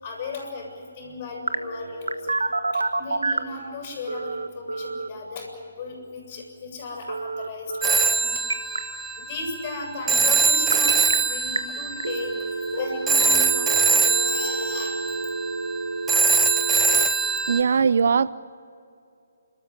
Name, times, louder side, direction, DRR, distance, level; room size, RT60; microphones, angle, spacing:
voice 1, 0.0-2.4 2.7-8.3 9.2-12.3 12.7-14.9, left 3 dB, 35° left, 1 dB, 7.4 m, -35 dB
Telephone, 1.5-3.6 4.1-5.1 7.1-8.1 8.3-8.8 10.5-11.1 11.6-11.7 12.0-17.0, right 3 dB, 75° right, 1.4 m, -29 dB
Telephone 2, 7.8-17.6, right 4 dB, 10° right, 0.9 m, -23 dB
voice 2, 17.5-18.3, right 6 dB, 55° right, 17 dB, 0.6 m, -20 dB
30.0 x 14.0 x 9.6 m, 2.5 s
figure-of-eight pair, 140°, 0 cm